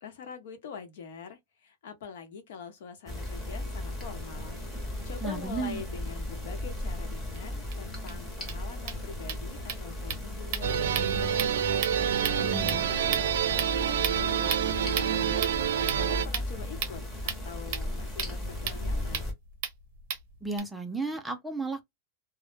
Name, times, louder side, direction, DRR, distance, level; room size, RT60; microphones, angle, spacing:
voice 1, 0.0-11.4 12.2-15.5 15.9-19.3, left 6 dB, 70° left, 0.8 m, -44 dB
sound 1, 3.1-19.3, left 1 dB, 10° left, 0.7 m, -36 dB
voice 2, 5.2-5.8 12.4-12.9 20.4-21.8, right 3 dB, 5° right, 0.3 m, -33 dB
sound 2, 7.3-7.4 7.7-7.8 8.1-8.2 8.4-20.6, right 8 dB, 45° right, 0.7 m, -37 dB
sound 3, 10.6-16.3, right 9 dB, 85° right, 0.4 m, -27 dB
2.0 x 2.0 x 3.1 m
supercardioid pair, 165°, 0 cm